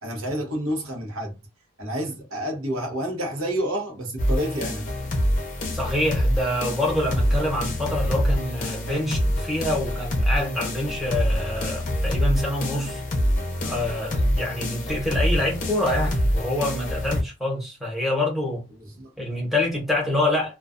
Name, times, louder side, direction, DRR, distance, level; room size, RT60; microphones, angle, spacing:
voice 1, 0.0-1.3 1.8-4.9 19.0-19.1, equal, 70° right, 0.8 m, -29 dB
sound 1, 4.2-17.2, equal, 35° left, 0.5 m, -25 dB
voice 2, 5.7-13.0 13.6-18.6 19.2-20.6, left 1 dB, ahead, 0.9 m, -26 dB
2.3 x 2.3 x 2.4 m
head